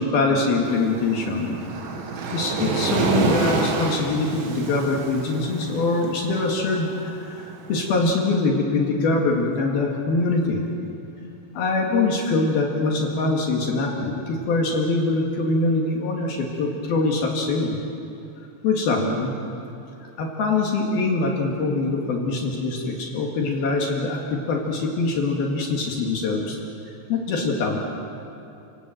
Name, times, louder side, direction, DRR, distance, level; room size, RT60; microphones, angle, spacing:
voice 1, 0.0-1.6 2.3-10.6 11.6-17.8 18.6-19.3 20.2-26.6 27.1-27.8, left 3 dB, 60° left, -1 dB, 3.7 m, -23 dB
Waves surf, 0.7-7.8, right 3 dB, 80° right, 4.4 m, -28 dB
29.5 x 18.5 x 7.8 m, 2.7 s
omnidirectional pair, 5.3 m